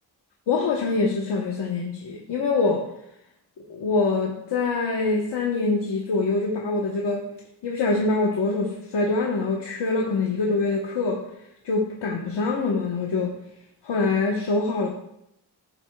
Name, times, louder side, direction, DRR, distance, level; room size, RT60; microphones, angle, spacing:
voice 1, 0.5-2.9 3.7-7.3 7.6-11.2 11.6-13.3 13.8-14.9, left 3 dB, 85° left, -1 dB, 1.2 m, -24 dB
13.5 x 8.0 x 2.3 m, 0.78 s
wide cardioid pair, 115°, 40 cm